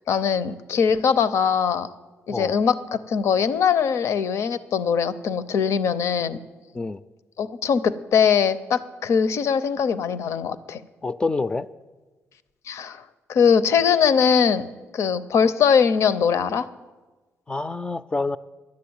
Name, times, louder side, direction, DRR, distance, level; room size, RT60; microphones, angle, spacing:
voice 1, 0.0-1.9 2.3-6.4 7.4-10.8 12.7-13.0 13.3-16.7, left 7 dB, 70° left, 14 dB, 0.6 m, -21 dB
voice 2, 11.0-11.7 17.5-18.4, left 3 dB, 20° left, 13 dB, 0.3 m, -27 dB
11.5 x 7.8 x 8.7 m, 1.3 s
cardioid pair, 100°, 5 cm